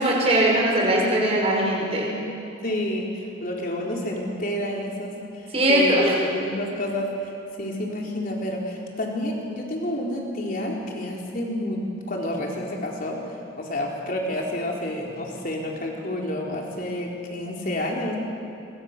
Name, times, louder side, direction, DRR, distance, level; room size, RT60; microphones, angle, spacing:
voice 1, 0.0-2.1 5.5-6.1, right 1 dB, 30° right, -3 dB, 5.5 m, -20 dB
voice 2, 0.6-0.9 1.3-1.4 2.6-6.0 6.3-7.3 7.6-18.2, left 1 dB, 40° left, -1 dB, 3.9 m, -30 dB
28.0 x 23.0 x 6.7 m, 2.9 s
head